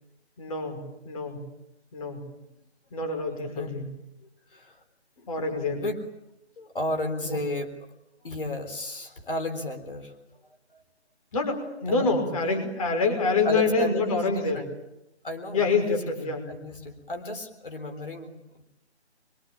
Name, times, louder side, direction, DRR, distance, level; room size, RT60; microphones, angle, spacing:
voice 1, 0.4-1.4 1.9-2.2 2.9-3.9 5.3-5.8 7.2-7.4 11.3-14.6 15.5-16.5, left 3 dB, 30° left, 4 dB, 5.5 m, -26 dB
voice 2, 4.2-4.8 5.2-6.0 6.6-7.9 8.2-10.1 10.7-10.8 11.9-12.3 13.4-14.7 15.2-18.6, left 1 dB, 50° left, 6 dB, 4.0 m, -34 dB
25.0 x 23.5 x 8.8 m, 0.87 s
figure-of-eight pair, 155°, 34 cm